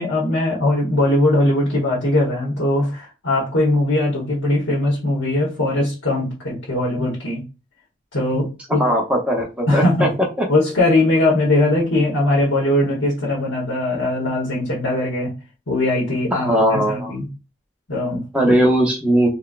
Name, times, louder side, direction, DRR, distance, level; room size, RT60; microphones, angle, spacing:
voice 1, 0.0-7.4 8.1-8.8 9.7-10.1 10.5-15.3 15.7-17.3 17.9-18.5, left 1 dB, 85° left, -4 dB, 1.1 m, -20 dB
voice 2, 8.8-10.1 10.4-10.5 16.3-17.1 18.3-19.3, equal, 5° right, 0 dB, 0.7 m, -18 dB
3.9 x 2.2 x 2.4 m, 0.29 s
head